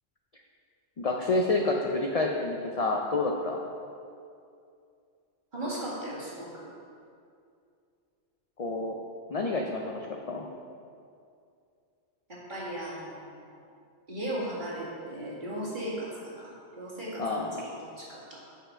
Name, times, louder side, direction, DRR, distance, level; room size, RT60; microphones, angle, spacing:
voice 1, 1.0-3.6 8.6-9.0 9.3-10.5 17.2-17.7, left 2 dB, 50° left, 1 dB, 0.4 m, -29 dB
voice 2, 5.5-6.7 12.3-13.4 14.1-18.4, right 1 dB, 40° right, -7 dB, 2.2 m, -37 dB
7.3 x 5.6 x 5.6 m, 2.4 s
omnidirectional pair, 1.2 m